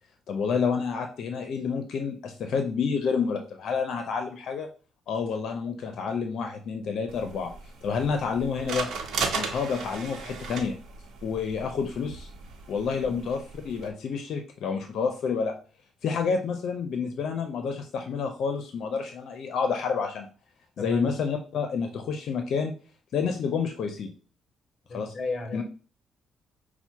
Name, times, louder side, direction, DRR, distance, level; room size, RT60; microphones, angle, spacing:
voice 1, 0.3-4.7 5.1-7.5 7.8-8.9 9.3-10.7 11.2-12.3 12.7-15.6 16.0-20.3 20.8-22.7 23.1-24.1 24.9-25.1 25.5-25.6, left 5 dB, 65° left, 0.6 m, -29 dB
sound 1, 7.1-13.9, right 4 dB, 70° right, 0.9 m, -36 dB
voice 2, 20.8-21.1 24.9-25.6, left 3 dB, 30° left, 1.1 m, -34 dB
5.5 x 2.1 x 4.5 m
cardioid pair, 110°, 0 cm